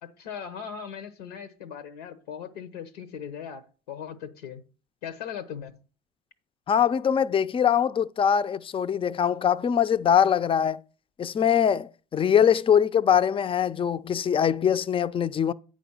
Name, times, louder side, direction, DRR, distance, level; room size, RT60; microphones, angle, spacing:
voice 1, 0.0-4.6 5.0-5.7, left 7 dB, 85° left, 1.0 m, -39 dB
voice 2, 6.7-10.8 11.2-15.5, left 8 dB, 25° left, 0.5 m, -22 dB
8.6 x 5.1 x 5.6 m
hypercardioid pair, 70°, 20 cm